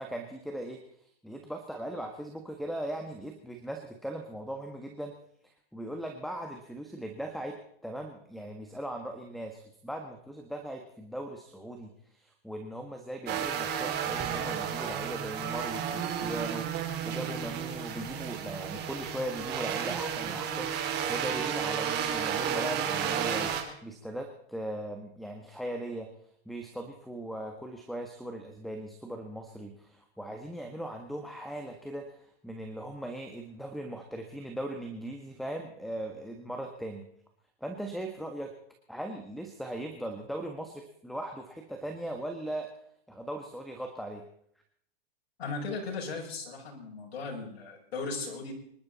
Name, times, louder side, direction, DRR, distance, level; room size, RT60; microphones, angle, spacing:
voice 1, 0.0-5.1 5.4-7.6 7.8-26.1 26.4-37.0 37.6-38.5 38.9-42.7 43.1-44.2, right 1 dB, ahead, 5 dB, 1.5 m, -39 dB
sound 1, 13.3-23.6, right 8 dB, 35° right, 3.1 m, -32 dB
voice 2, 45.4-48.5, left 3 dB, 80° left, -3 dB, 6.6 m, -37 dB
26.0 x 12.0 x 4.2 m, 0.69 s
hypercardioid pair, 140°, 30 cm